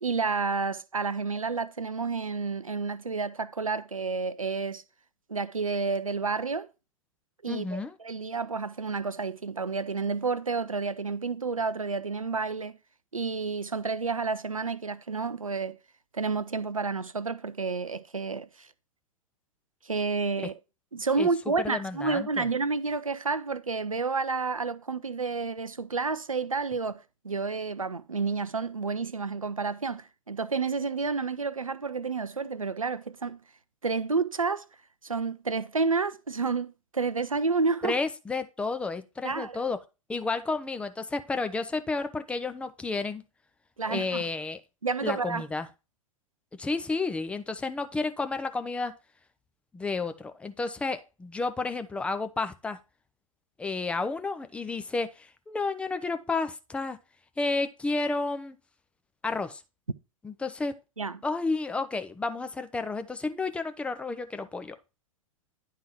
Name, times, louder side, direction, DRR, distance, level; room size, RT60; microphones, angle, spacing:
voice 1, 0.0-4.8 5.3-6.7 7.4-12.8 13.1-15.8 16.1-18.7 19.8-20.5 20.9-33.4 33.8-34.7 35.0-38.0 39.2-39.6 43.8-44.2 44.8-45.4 61.0-61.2, right 4 dB, 85° right, 0.5 m, -30 dB
voice 2, 7.5-7.9 20.4-20.5 21.2-21.3 21.6-22.5 37.8-39.8 40.1-43.2 43.9-44.6 45.0-45.7 46.6-48.9 49.7-52.8 53.6-57.0 57.4-58.6 59.2-59.6 60.2-60.7 61.2-64.8, left 3 dB, 5° left, 0.5 m, -31 dB
10.5 x 3.7 x 4.4 m
figure-of-eight pair, 100°, 17 cm